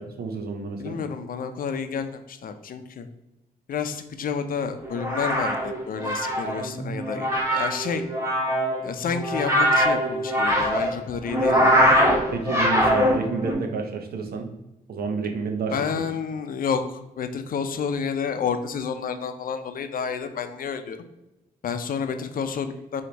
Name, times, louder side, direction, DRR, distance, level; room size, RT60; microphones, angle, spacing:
voice 1, 0.0-1.0 12.3-14.5 14.9-16.0, right 4 dB, 75° right, 5 dB, 0.8 m, -30 dB
voice 2, 0.8-3.1 3.7-8.0 8.8-11.7 15.7-21.0 21.6-23.0, left 6 dB, 65° left, 8 dB, 0.5 m, -30 dB
sound 1, 4.8-13.5, equal, 15° right, 1.4 m, -22 dB
4.5 x 2.8 x 4.0 m, 0.94 s
cardioid pair, 70°, 16 cm